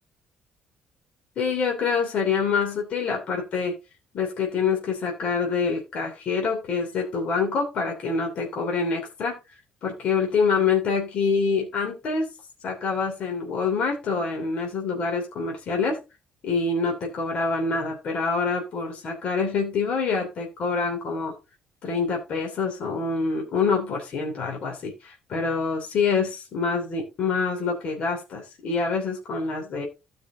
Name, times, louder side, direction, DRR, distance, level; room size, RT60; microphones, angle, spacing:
voice 1, 1.4-3.7 4.1-9.4 9.8-12.3 12.6-16.0 16.4-21.3 21.8-29.9, left 5 dB, 50° left, 1 dB, 2.9 m, -26 dB
16.0 x 5.3 x 2.7 m, 0.26 s
cardioid pair, 140°, 3 cm